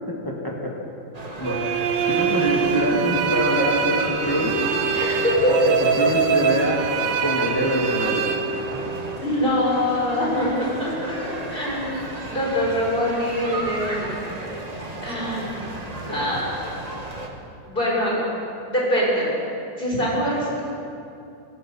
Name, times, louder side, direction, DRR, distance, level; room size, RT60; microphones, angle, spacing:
voice 1, 0.1-0.7 1.4-1.6 2.1-4.6 5.5-6.8 7.2-8.2 16.1-16.5, equal, 10° left, -2 dB, 2.0 m, -24 dB
sound 1, 1.1-17.3, right 2 dB, 20° right, 1.3 m, -35 dB
sound 2, 1.4-9.2, right 6 dB, 70° right, 1.4 m, -24 dB
voice 2, 4.9-5.5 8.7-8.8 9.2-12.0 12.3-14.1 15.0-15.7 16.1-16.6 17.7-18.2 18.7-19.4 19.8-20.6, left 1 dB, 25° left, -4 dB, 4.3 m, -24 dB
16.5 x 14.0 x 6.3 m, 2.7 s
omnidirectional pair, 2.1 m